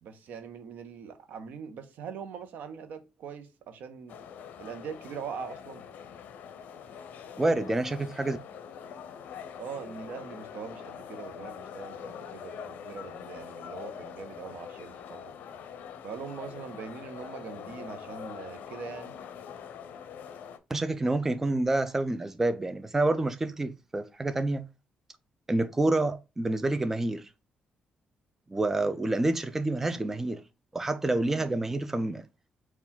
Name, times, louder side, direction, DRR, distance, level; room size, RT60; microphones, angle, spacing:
voice 1, 0.0-4.2 4.6-5.8 9.6-15.3 16.0-19.1 31.2-31.8, right 6 dB, 85° right, 0.8 m, -42 dB
sound 1, 4.1-20.6, left 7 dB, 85° left, 0.5 m, -43 dB
voice 2, 7.4-8.4 20.7-24.7 25.5-27.3 28.5-30.4 30.7-32.2, right 2 dB, 15° right, 0.3 m, -28 dB
4.5 x 2.4 x 3.6 m
cardioid pair, 150°, 3 cm